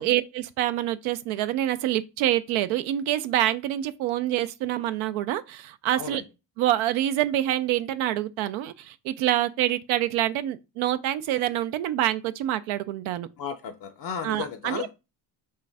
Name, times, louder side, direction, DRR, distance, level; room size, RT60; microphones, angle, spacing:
voice 1, 0.0-6.2 6.6-13.3 14.2-14.9, right 13 dB, 80° right, 0.5 m, -26 dB
voice 2, 13.4-14.9, left 7 dB, 50° left, 0.6 m, -34 dB
4.5 x 2.4 x 3.4 m
supercardioid pair, 60°, 48 cm